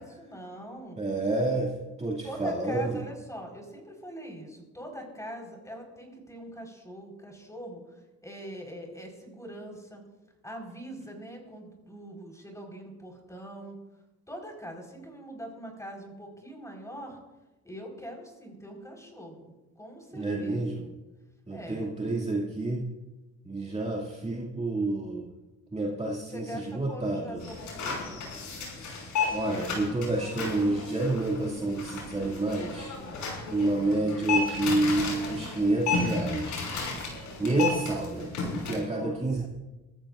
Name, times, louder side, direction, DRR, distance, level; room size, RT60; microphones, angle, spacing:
voice 1, 0.0-1.0 2.2-10.0 10.4-13.8 14.3-17.2 17.6-20.8 21.5-22.2 26.3-28.2 32.9-33.3 37.4-37.8 38.1-38.3 38.8-39.5, equal, 10° left, 1 dB, 4.6 m, -43 dB
voice 2, 1.0-1.7 2.0-3.0 20.1-20.9 21.5-22.8 23.4-25.2 25.7-27.4 29.3-32.9 33.5-36.7 37.4-39.5, right 2 dB, 20° right, -4 dB, 2.4 m, -29 dB
sound 1, 27.4-38.7, left 4 dB, 75° left, 5.9 m, -33 dB
24.0 x 14.5 x 2.5 m, 1.1 s
cardioid pair, 90°, 30 cm